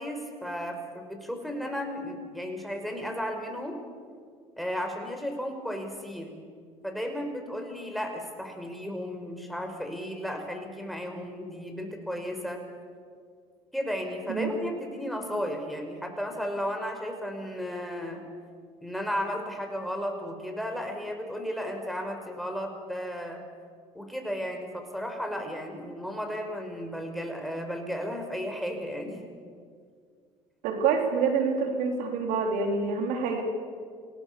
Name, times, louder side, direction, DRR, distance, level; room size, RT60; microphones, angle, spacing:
voice 1, 0.0-3.8 4.6-6.4 6.8-12.6 13.7-18.2 18.8-23.4 23.9-29.2, equal, ahead, 3 dB, 5.5 m, -34 dB
voice 2, 30.6-33.4, right 5 dB, 70° right, 3 dB, 3.8 m, -27 dB
27.0 x 18.5 x 7.0 m, 2.1 s
hypercardioid pair, 65°, 14 cm